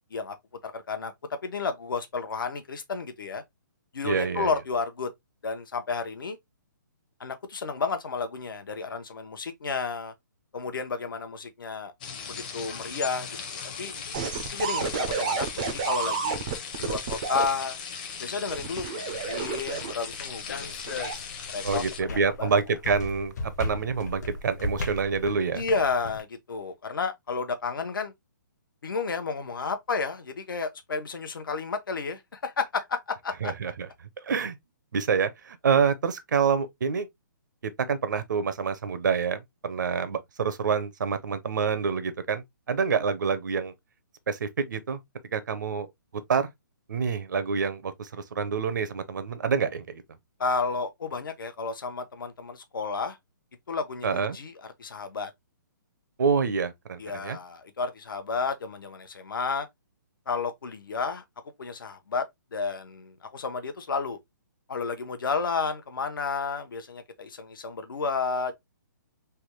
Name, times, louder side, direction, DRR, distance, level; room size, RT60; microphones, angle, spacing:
voice 1, 0.6-3.4 3.9-5.1 5.4-6.4 7.2-10.1 10.5-11.9 12.3-13.3 13.8-13.9 14.5-16.5 16.8-17.8 18.2-20.8 21.5-22.5 25.5-28.1 28.8-33.5 50.4-53.2 53.7-54.5 54.8-55.3 57.0-59.7 60.3-61.2 61.6-64.2 64.7-68.5, left 4 dB, 85° left, 0.8 m, -31 dB
voice 2, 4.0-4.5 21.6-25.6 33.4-33.9 34.2-34.6 34.9-37.1 37.9-43.7 44.3-45.0 45.3-45.9 46.3-46.5 46.9-50.0 54.0-54.4 56.2-57.4, right 6 dB, 65° right, 0.6 m, -27 dB
sound 1, 12.0-22.0, left 6 dB, 25° left, 0.6 m, -38 dB
sound 2, 14.1-17.5 18.5-20.1 20.8-21.1, right 6 dB, 20° right, 0.4 m, -30 dB
sound 3, 19.1-26.2, left 2 dB, 55° left, 0.8 m, -37 dB
3.4 x 2.2 x 2.9 m
hypercardioid pair, 170°, 11 cm